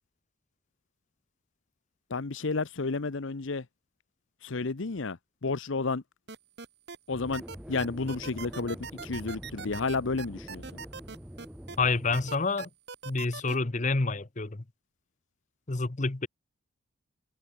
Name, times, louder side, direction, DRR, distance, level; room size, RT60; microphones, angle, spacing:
voice 1, 2.1-3.7 4.4-6.0 7.1-7.4 7.7-10.8, left 3 dB, 70° left, 0.8 m, -31 dB
sound 1, 6.3-7.0 7.3-11.8 12.1-13.6, right 5 dB, 55° right, 1.3 m, -41 dB
sound 2, 7.1-12.4, equal, 5° right, 1.1 m, -45 dB
voice 2, 11.8-12.7 13.0-14.6 15.7-16.3, left 3 dB, 35° left, 0.9 m, -28 dB
head